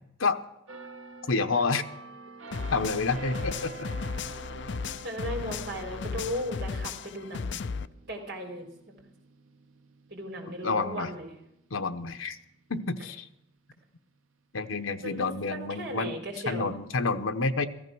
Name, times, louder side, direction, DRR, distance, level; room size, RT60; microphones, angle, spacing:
sound 1, 0.7-12.2 12.7-12.9, right 3 dB, 90° right, 1.5 m, -47 dB
voice 1, 1.3-1.8 2.7-3.9 10.6-11.1 11.7-12.4 12.7-13.3 14.5-16.1 16.5-17.7, left 4 dB, 85° left, 9 dB, 1.0 m, -29 dB
sound 2, 2.5-7.9, left 5 dB, 60° left, 0.5 m, -35 dB
voice 2, 5.0-8.6 10.1-11.3 15.0-16.8, equal, 55° right, 3 dB, 4.1 m, -37 dB
15.0 x 14.5 x 6.2 m, 0.83 s
head